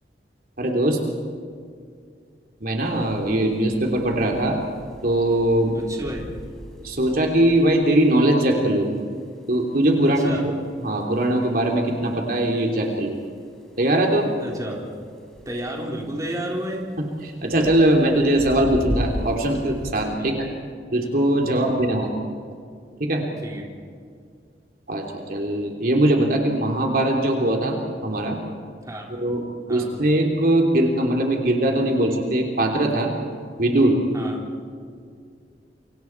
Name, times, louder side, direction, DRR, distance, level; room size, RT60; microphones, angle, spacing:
voice 1, 0.6-1.0 2.6-4.6 5.0-5.7 6.8-8.9 9.5-10.5 10.8-13.2 13.8-14.3 17.2-20.5 20.9-22.1 23.0-23.2 24.9-28.4 29.2-29.4 29.7-33.1 33.6-34.0, right 1 dB, 55° right, 1 dB, 3.2 m, -21 dB
sound 1, 2.8-20.0, equal, 5° left, 4.5 m, -38 dB
voice 2, 5.7-6.3 10.0-10.5 14.4-14.8 15.5-16.9 20.2-20.3 21.5-21.7 23.4-23.7 28.8-29.1 29.7-30.0 34.1-34.5, equal, 20° right, -1 dB, 3.8 m, -31 dB
29.0 x 26.0 x 4.7 m, 2.2 s
head